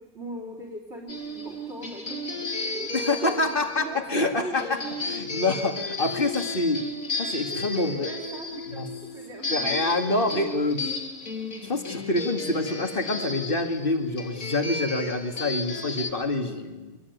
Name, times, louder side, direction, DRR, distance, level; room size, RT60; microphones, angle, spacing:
voice 1, 0.0-2.9 3.2-4.8 7.5-8.8 9.1-9.8, right 1 dB, 40° right, 1 dB, 4.2 m, -40 dB
sound 1, 1.1-16.1, left 3 dB, 55° left, 3.3 m, -33 dB
voice 2, 2.9-6.8 7.2-8.1 8.7-8.9 9.5-10.9 11.6-17.0, left 2 dB, 30° left, 7 dB, 2.4 m, -27 dB
27.0 x 21.5 x 9.5 m, 1.2 s
omnidirectional pair, 1.8 m